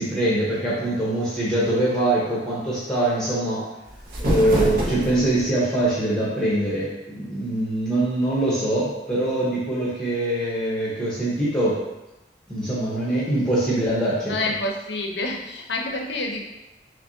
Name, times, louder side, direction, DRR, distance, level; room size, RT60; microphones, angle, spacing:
voice 1, 0.0-3.6 4.2-11.8 12.5-14.5, right 1 dB, 5° left, -9 dB, 0.8 m, -23 dB
sound 1, 3.8-5.5, equal, 50° right, 0.7 m, -26 dB
voice 2, 14.3-16.4, left 2 dB, 75° left, 1 dB, 0.6 m, -28 dB
5.6 x 2.1 x 2.6 m, 0.99 s
head